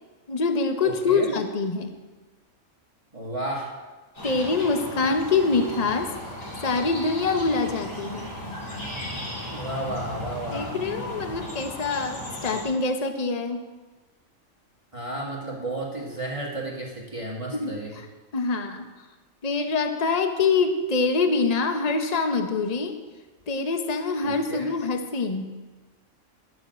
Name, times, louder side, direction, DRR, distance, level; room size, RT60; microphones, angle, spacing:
voice 1, 0.3-1.9 4.2-6.1 6.6-8.3 10.5-13.6 17.5-18.1 18.3-18.8 19.4-23.0 23.5-25.5, left 4 dB, 30° left, 6 dB, 1.0 m, -25 dB
voice 2, 0.8-1.3 3.1-3.7 9.5-10.8 14.9-17.9 24.2-24.7, right 1 dB, 25° right, -3 dB, 2.1 m, -33 dB
sound 1, 4.2-12.6, equal, 75° left, 4.4 m, -36 dB
12.5 x 7.5 x 7.7 m, 1.2 s
omnidirectional pair, 1.4 m